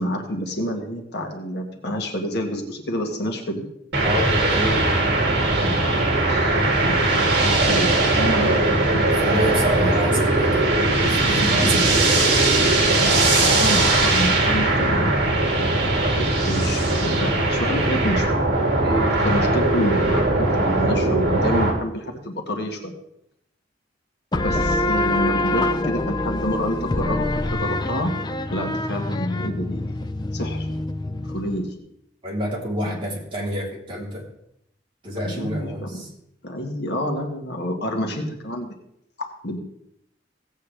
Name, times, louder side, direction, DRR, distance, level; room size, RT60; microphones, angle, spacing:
voice 1, 0.0-3.7 5.6-9.9 11.4-11.9 13.0-15.1 16.1-18.3 19.2-23.0 24.4-28.1 28.5-30.0 30.3-30.7 31.3-31.7 32.8-33.0 35.2-36.0 36.4-38.7 39.2-39.6, equal, 65° left, 2 dB, 1.7 m, -28 dB
sound 1, 3.9-21.7, right 2 dB, 60° right, 2.7 m, -20 dB
voice 2, 4.0-4.9 8.9-10.6 11.0-12.2 18.8-19.2 32.2-34.2 35.0-36.1, equal, 30° right, -4 dB, 3.4 m, -28 dB
sound 2, 24.3-31.6, left 1 dB, 25° left, 0.6 m, -25 dB
17.0 x 8.2 x 3.3 m, 0.77 s
head